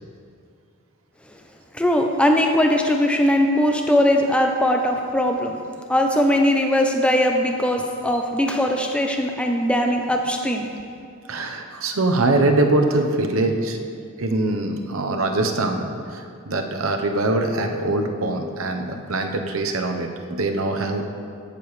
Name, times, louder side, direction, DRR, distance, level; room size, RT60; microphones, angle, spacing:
voice 1, 1.7-5.6 5.9-10.7, left 1 dB, 5° left, 3 dB, 0.5 m, -20 dB
voice 2, 11.3-13.8 14.2-21.0, right 2 dB, 80° right, 4 dB, 0.9 m, -23 dB
15.5 x 6.9 x 3.2 m, 2.3 s
head